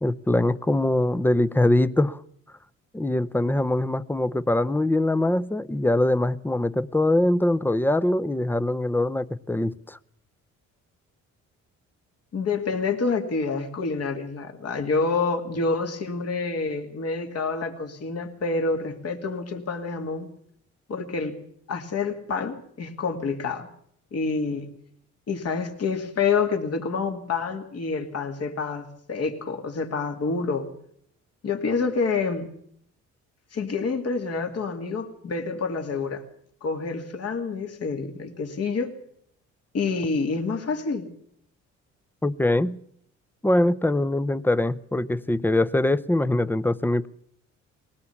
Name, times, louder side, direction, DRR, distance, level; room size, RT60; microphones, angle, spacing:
voice 1, 0.0-2.2 2.9-10.0 42.2-42.8 43.4-47.1, left 1 dB, 5° left, 0.7 m, -23 dB
voice 2, 12.3-20.3 20.9-21.4 21.7-23.7 24.1-24.7 25.3-30.7 31.4-32.5 33.5-36.2 36.6-38.9 39.7-41.1, left 4 dB, 55° left, 2.6 m, -27 dB
20.5 x 17.5 x 7.2 m
cardioid pair, 90°, 30 cm